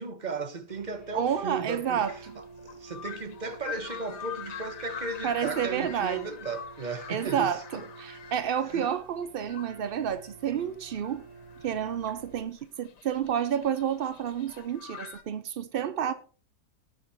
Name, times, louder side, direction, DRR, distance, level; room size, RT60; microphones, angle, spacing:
voice 1, 0.0-7.8 8.7-8.9, right 4 dB, 30° right, 1.1 m, -36 dB
sound 1, 0.7-12.4, right 4 dB, 15° right, 5.3 m, -49 dB
voice 2, 1.1-2.4 5.2-6.2 7.1-11.2 11.6-16.1, right 8 dB, 70° right, 0.5 m, -30 dB
sound 2, 1.8-15.2, left 8 dB, 85° left, 1.7 m, -44 dB
18.5 x 6.4 x 4.1 m
omnidirectional pair, 1.7 m